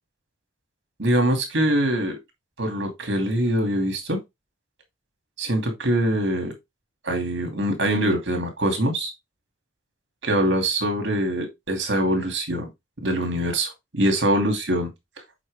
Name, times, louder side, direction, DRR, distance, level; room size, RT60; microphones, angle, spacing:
voice 1, 1.0-2.2 2.6-4.2 5.4-6.5 7.0-9.1 10.2-12.7 13.0-14.9, right 1 dB, 70° right, 2.5 m, -23 dB
7.7 x 4.4 x 3.5 m
head